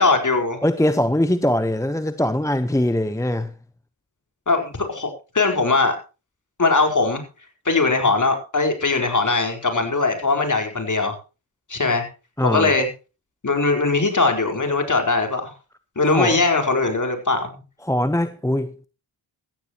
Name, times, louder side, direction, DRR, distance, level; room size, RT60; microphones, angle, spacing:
voice 1, 0.0-0.6 4.5-5.1 5.3-6.0 6.6-7.2 7.6-11.2 11.7-12.1 12.4-12.9 13.4-15.5 16.0-17.5, left 3 dB, 40° left, 4.5 m, -20 dB
voice 2, 0.6-3.5 12.4-12.7 16.1-16.4 17.8-18.7, left 1 dB, 5° left, 0.9 m, -21 dB
15.0 x 15.0 x 3.0 m
supercardioid pair, 45°, 47 cm